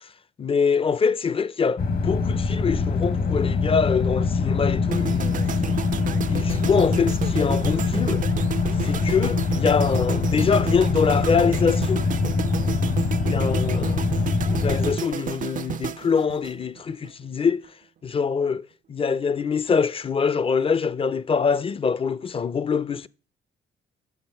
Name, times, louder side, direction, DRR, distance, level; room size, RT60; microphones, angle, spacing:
voice 1, 0.4-5.4 5.9-8.2 8.8-12.0 13.3-14.1 14.5-17.6 18.0-18.6 18.9-23.1, left 6 dB, 30° left, 0.5 m, -24 dB
sound 1, 1.8-15.0, left 4 dB, 50° left, 1.1 m, -24 dB
sound 2, 4.9-17.1 17.4-17.7, right 9 dB, 45° right, 0.4 m, -32 dB
7.9 x 6.6 x 5.7 m
cardioid pair, 90°, 20 cm